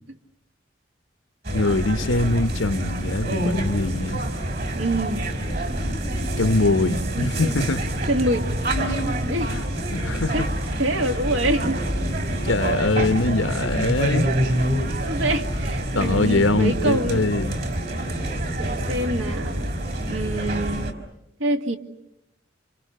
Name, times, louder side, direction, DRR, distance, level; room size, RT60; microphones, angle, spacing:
sound 1, 1.4-20.9, right 1 dB, 50° right, 3.5 m, -26 dB
voice 1, 1.5-4.2 6.4-7.8 9.5-9.6 9.9-10.5 12.4-14.3 15.9-17.6, left 2 dB, 85° left, 1.2 m, -23 dB
voice 2, 4.7-5.3 6.8-7.6 8.1-8.5 8.9-9.6 10.3-10.4 10.8-11.8 13.1-13.2 15.0-17.3 18.6-19.7 20.1-20.9 21.4-21.8, right 1 dB, 85° right, 2.4 m, -26 dB
29.5 x 28.0 x 6.8 m
head